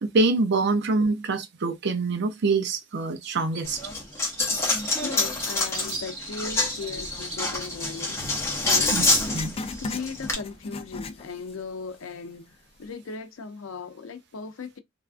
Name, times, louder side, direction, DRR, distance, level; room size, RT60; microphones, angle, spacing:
voice 1, 0.0-3.8 8.9-9.1 9.3-9.5, right 3 dB, 55° right, 0.5 m, -25 dB
Bird, 3.5-10.7, right 1 dB, 35° right, 2.1 m, -41 dB
Coin (dropping), 3.6-10.3, left 2 dB, 15° left, 0.8 m, -27 dB
voice 2, 5.0-8.9 9.8-14.8, left 4 dB, 90° left, 0.5 m, -37 dB
Writing, 8.6-11.6 12.0-12.1 12.8-12.9, left 3 dB, 30° left, 0.3 m, -37 dB
3.3 x 2.4 x 2.4 m
head